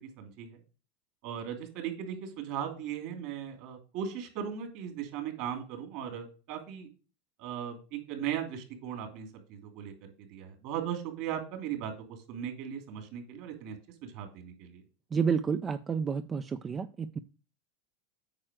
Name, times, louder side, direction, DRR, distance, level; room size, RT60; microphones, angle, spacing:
voice 1, 0.2-0.6 1.2-6.9 7.4-13.8 14.0-14.8, right 9 dB, 60° right, 2.7 m, -38 dB
voice 2, 15.1-17.2, right 6 dB, 25° right, 0.4 m, -30 dB
9.0 x 4.5 x 6.1 m
supercardioid pair, 125°, 0 cm